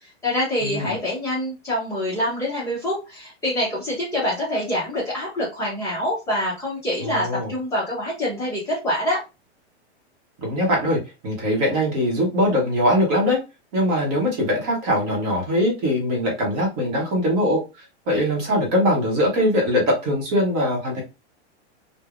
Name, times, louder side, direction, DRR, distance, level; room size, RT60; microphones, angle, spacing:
voice 1, 0.0-9.2, left 1 dB, 10° left, -8 dB, 0.7 m, -25 dB
voice 2, 0.6-1.0 7.0-7.5 10.4-13.4 13.7-21.0, equal, 25° right, -1 dB, 0.9 m, -22 dB
3.2 x 2.1 x 2.4 m, 0.27 s
supercardioid pair, 165°, 34 cm